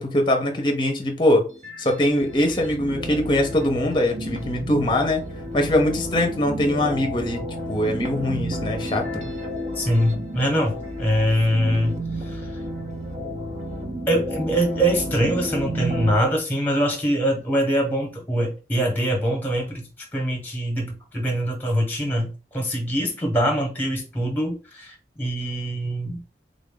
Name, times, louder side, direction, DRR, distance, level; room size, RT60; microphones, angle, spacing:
voice 1, 0.0-1.5 1.8-5.2 5.5-7.4 7.7-9.2, left 1 dB, 25° left, 0.7 m, -22 dB
sound 1, 1.5-16.1, equal, 40° right, 0.7 m, -31 dB
voice 2, 9.7-12.0 12.3-12.4 14.1-19.8 20.1-26.2, equal, 10° left, 1.1 m, -23 dB
3.7 x 2.5 x 3.8 m
head